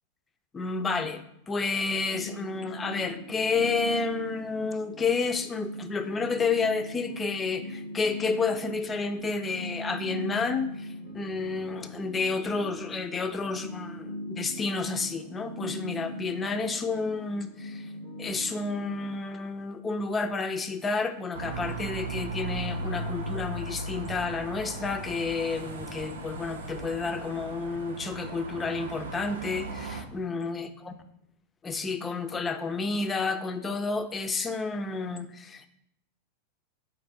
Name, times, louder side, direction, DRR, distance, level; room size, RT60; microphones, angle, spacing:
voice 1, 0.5-17.9 18.2-30.9 31.6-35.7, left 4 dB, 20° left, 8 dB, 0.4 m, -30 dB
sound 1, 2.1-19.2, equal, 80° left, 0.8 m, -40 dB
sound 2, 21.3-30.0, right 2 dB, 90° right, 0.5 m, -37 dB
3.8 x 2.6 x 4.4 m, 0.76 s
hypercardioid pair, 105°, 0 cm